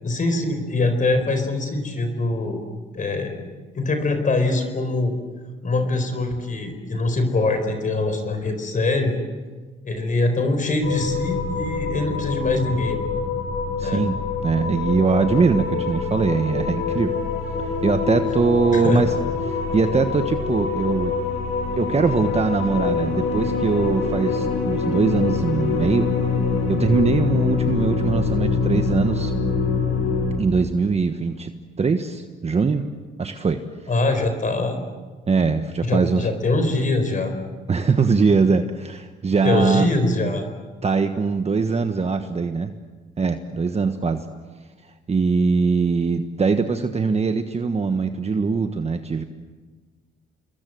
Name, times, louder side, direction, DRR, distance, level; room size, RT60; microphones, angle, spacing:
voice 1, 0.0-2.6 2.9-3.3 3.7-5.1 5.6-9.2 9.8-13.0 13.8-14.1 18.7-19.0 33.9-34.8 35.8-37.3 39.4-40.5, left 2 dB, 40° left, 7 dB, 4.5 m, -23 dB
sound 1, 10.8-30.4, left 5 dB, 85° left, 6.6 m, -25 dB
voice 2, 13.8-17.2 17.6-19.1 19.4-21.1 21.8-26.1 26.7-29.3 30.4-31.5 31.8-32.8 33.2-33.6 35.3-36.3 37.7-39.9 40.8-42.7 43.2-44.2 45.1-49.2, right 4 dB, 30° right, 7 dB, 1.3 m, -22 dB
27.5 x 22.0 x 7.8 m, 1.4 s
cardioid pair, 90°, 20 cm